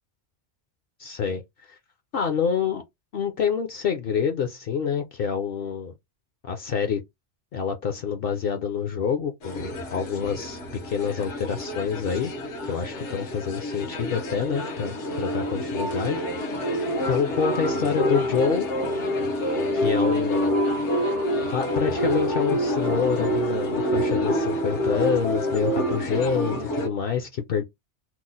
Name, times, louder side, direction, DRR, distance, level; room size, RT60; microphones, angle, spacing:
voice 1, 1.0-1.4 1.7-1.8 2.1-2.8 3.1-5.9 6.4-7.0 7.5-12.3 12.7-18.7 19.7-20.6 21.5-27.6, left 7 dB, 60° left, 0.7 m, -27 dB
sound 1, 9.4-26.9, equal, 85° left, 1.2 m, -27 dB
3.0 x 2.0 x 3.8 m
omnidirectional pair, 1.2 m